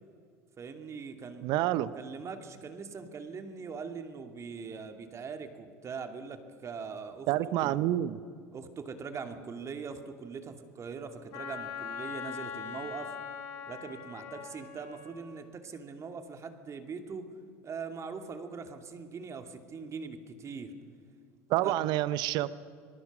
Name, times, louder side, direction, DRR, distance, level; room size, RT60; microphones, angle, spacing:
voice 1, 0.6-1.5 1.9-7.3 7.6-7.8 8.5-13.1 13.7-17.3 17.6-20.7 21.6-21.7, right 5 dB, 35° right, 6 dB, 2.4 m, -41 dB
voice 2, 1.4-1.9 7.3-8.2 21.5-22.5, right 14 dB, 60° right, 16 dB, 0.8 m, -28 dB
Wind instrument woodwind instrument, 11.3-15.2, left 7 dB, 65° left, 4.0 m, -41 dB
26.5 x 19.0 x 6.1 m, 2.2 s
hypercardioid pair, 80°, 8 cm